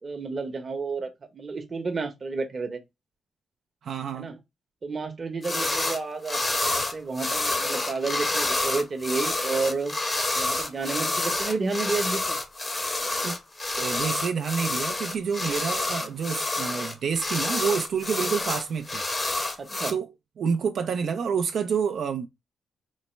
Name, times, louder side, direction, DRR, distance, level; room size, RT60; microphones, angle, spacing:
voice 1, 0.0-2.8 4.1-4.4 4.8-9.9 10.4-12.4 19.6-20.0, right 4 dB, 45° right, 0.8 m, -31 dB
voice 2, 3.8-4.3 13.2-13.4 13.8-19.0 19.9-20.1 20.4-22.3, right 6 dB, 70° right, 0.4 m, -28 dB
sound 1, 5.4-6.0 6.3-19.9, left 2 dB, 30° left, 0.8 m, -28 dB
4.0 x 2.1 x 3.1 m
cardioid pair, 70°, 0 cm